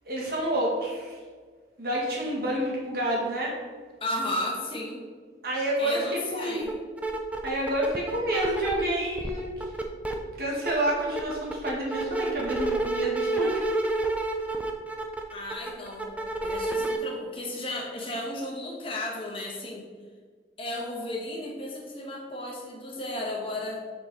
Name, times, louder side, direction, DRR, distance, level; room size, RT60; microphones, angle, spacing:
voice 1, 0.1-1.2 1.8-3.5 5.4-6.6 7.4-9.7 10.4-13.6, right 1 dB, 55° right, -4 dB, 1.8 m, -29 dB
voice 2, 4.0-5.0 5.8-6.7 15.3-16.1 16.4-19.8 20.6-23.8, left 1 dB, 30° left, -1 dB, 1.2 m, -34 dB
sound 1, 6.6-6.7 7.0-8.8 9.2-10.1 10.5-17.0, right 2 dB, 10° right, 0.4 m, -29 dB
7.6 x 4.0 x 4.2 m, 1.5 s
head